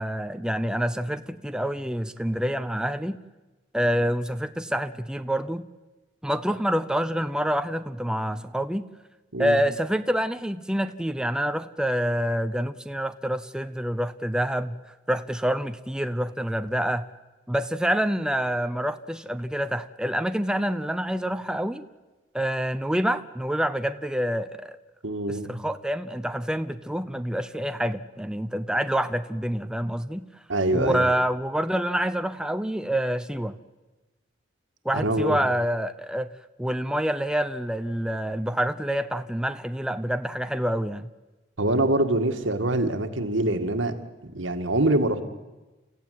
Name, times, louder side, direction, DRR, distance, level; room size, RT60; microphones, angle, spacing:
voice 1, 0.0-3.2 3.7-5.6 6.2-8.8 9.4-14.8 15.1-17.0 17.5-21.8 22.3-24.8 25.3-30.3 30.7-33.6 34.8-36.3 36.6-41.1, equal, 5° right, 10 dB, 0.7 m, -27 dB
voice 2, 25.0-25.5 30.5-31.1 34.9-35.4 41.6-43.9 44.2-45.2, right 1 dB, 85° right, 7 dB, 2.0 m, -24 dB
30.0 x 15.0 x 9.5 m, 1.2 s
head